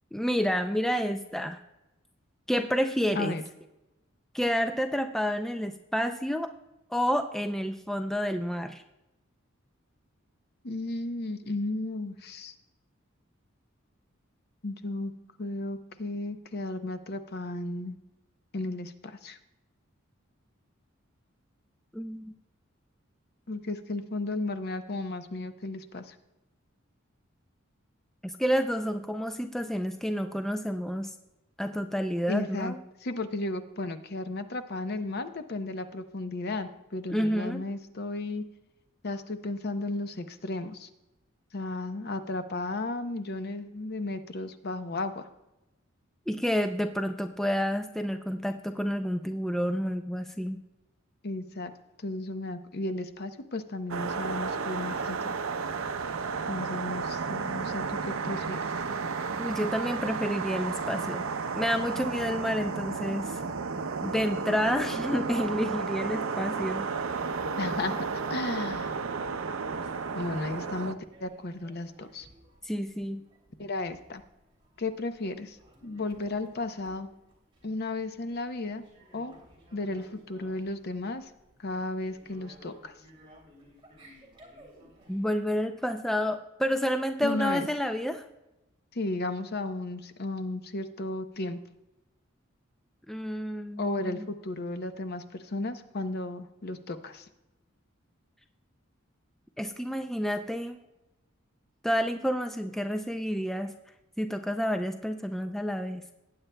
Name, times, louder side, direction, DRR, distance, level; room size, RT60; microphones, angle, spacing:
voice 1, 0.1-1.6 2.5-3.4 4.3-6.5 6.9-8.8 21.9-22.3 28.2-31.1 31.6-32.8 37.1-37.6 46.3-50.6 59.4-61.3 61.5-63.4 64.0-66.9 72.6-73.2 85.1-88.2 93.1-94.3 99.6-100.8 101.8-103.7 104.2-106.0, equal, ahead, 6 dB, 0.3 m, -29 dB
voice 2, 10.6-12.5 14.6-15.1 15.4-18.0 18.5-19.4 23.5-26.2 32.3-32.7 33.0-38.4 39.0-40.9 41.5-45.3 51.2-51.7 52.0-55.4 56.5-58.7 67.6-69.0 70.1-72.3 73.6-74.2 74.8-75.6 75.8-77.1 77.6-78.8 79.1-79.3 79.7-81.3 81.6-82.9 87.2-87.7 88.9-91.6 93.8-97.3, left 2 dB, 50° left, 9 dB, 0.7 m, -34 dB
sound 1, 53.9-70.9, right 5 dB, 80° right, 0.6 m, -33 dB
sound 2, 66.4-85.4, equal, 25° right, 2.8 m, -58 dB
19.0 x 8.7 x 2.2 m, 0.96 s
head